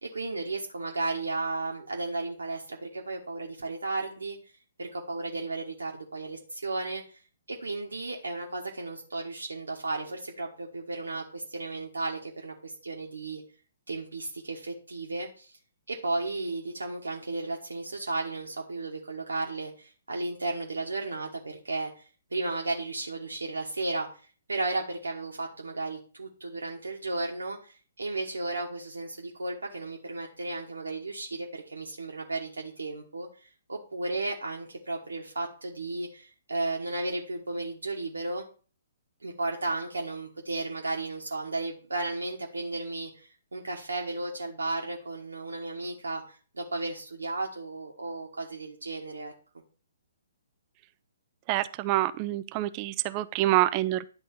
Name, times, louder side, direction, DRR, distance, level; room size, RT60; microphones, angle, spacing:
voice 1, 0.0-4.4 4.8-7.2 7.5-13.4 13.9-15.5 15.9-24.1 24.5-38.4 39.2-49.3, right 2 dB, 70° right, -1 dB, 1.5 m, -34 dB
voice 2, 51.5-54.1, right 15 dB, 30° right, 13 dB, 0.5 m, -26 dB
11.0 x 3.8 x 7.2 m, 0.38 s
figure-of-eight pair, 125°, 0 cm